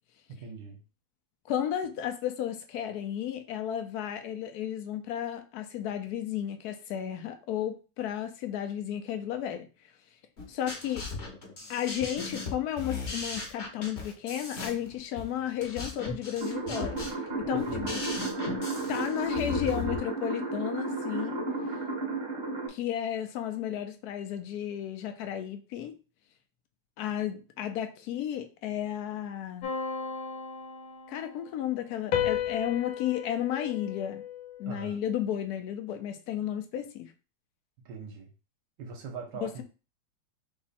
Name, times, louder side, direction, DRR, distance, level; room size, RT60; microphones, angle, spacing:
voice 1, 0.3-0.8 17.5-18.0 34.7-35.0 37.8-38.3 38.8-39.6, right 5 dB, 65° right, 3 dB, 1.4 m, -41 dB
voice 2, 1.5-9.7 10.5-11.1 11.7-17.0 17.4-18.0 18.9-21.4 22.7-25.9 27.0-29.7 31.1-34.2 34.6-37.1 39.4-39.5, left 10 dB, 65° left, 7 dB, 1.0 m, -33 dB
sound 1, 10.4-20.0, left 4 dB, 40° left, 1.0 m, -38 dB
sound 2, 16.4-22.7, right 3 dB, 20° right, 0.8 m, -33 dB
sound 3, 29.6-31.4 32.1-34.8, left 8 dB, 85° left, 1.6 m, -34 dB
3.5 x 3.0 x 4.1 m, 0.32 s
omnidirectional pair, 2.2 m